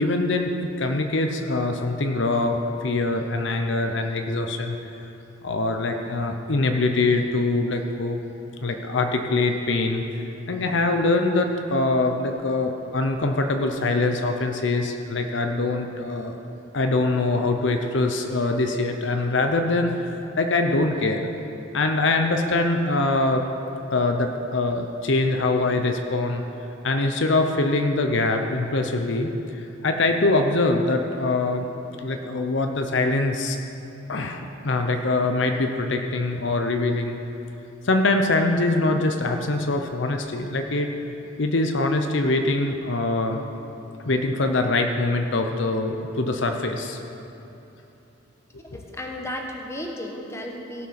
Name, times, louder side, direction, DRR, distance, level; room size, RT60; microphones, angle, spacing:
voice 1, 0.0-4.8 5.4-8.2 8.6-16.4 16.7-21.2 21.7-23.4 23.9-26.4 26.8-31.7 32.0-33.6 34.1-37.2 37.8-40.9 41.4-43.4 44.1-47.0 48.7-48.8, left 2 dB, 60° left, 5 dB, 0.7 m, -23 dB
voice 2, 48.7-50.9, left 1 dB, 15° left, 1 dB, 1.0 m, -34 dB
17.0 x 6.1 x 5.8 m, 3.0 s
head